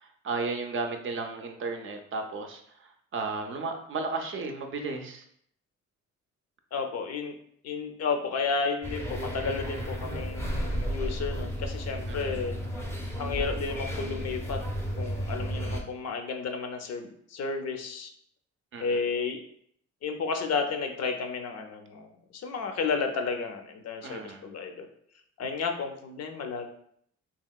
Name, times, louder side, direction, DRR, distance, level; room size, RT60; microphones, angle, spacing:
voice 1, 0.0-5.3 12.1-12.5 18.7-19.0 24.0-24.4, right 3 dB, 45° right, 4 dB, 0.5 m, -34 dB
voice 2, 6.7-7.3 7.6-12.6 13.2-14.6 15.0-18.1 18.8-19.4 20.0-24.9 25.4-26.7, left 5 dB, 55° left, 5 dB, 0.5 m, -32 dB
sound 1, 8.8-15.8, equal, 10° left, 0.5 m, -33 dB
2.9 x 2.8 x 2.3 m, 0.66 s
cardioid pair, 90°, 30 cm